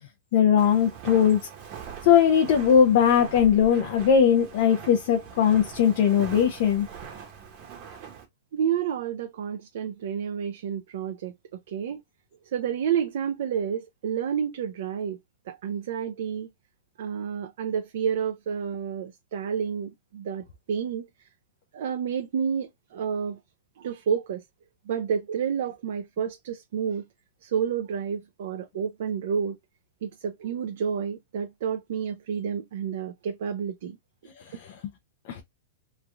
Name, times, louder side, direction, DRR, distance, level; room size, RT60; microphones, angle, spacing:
voice 1, 0.3-1.4 2.0-6.9 34.6-34.7 35.3-35.4, left 8 dB, 55° left, 0.6 m, -20 dB
Walk footsteps, 0.6-8.3, right 7 dB, 35° right, 0.9 m, -42 dB
voice 2, 8.5-12.0 12.5-15.2 15.5-16.5 17.0-21.1 21.7-23.4 23.8-24.4 24.9-27.1 27.4-29.6 30.0-34.0, right 7 dB, 70° right, 0.5 m, -30 dB
3.1 x 2.4 x 2.3 m
supercardioid pair, 150°, 0 cm